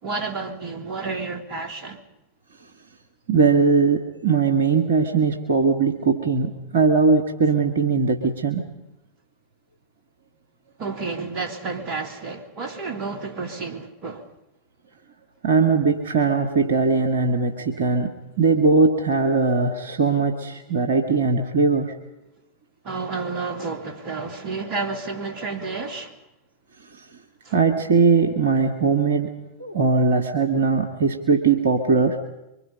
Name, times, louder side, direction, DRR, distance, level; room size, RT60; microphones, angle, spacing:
voice 1, 0.0-2.0 10.8-14.3 22.8-26.2 27.4-27.6, right 4 dB, 40° right, 3.0 m, -31 dB
voice 2, 3.3-8.6 15.4-18.1 18.4-21.9 26.9-27.0 27.5-29.3 29.6-32.2, right 4 dB, 65° right, 2.1 m, -20 dB
25.5 x 24.5 x 5.6 m
figure-of-eight pair, 90°, 0 cm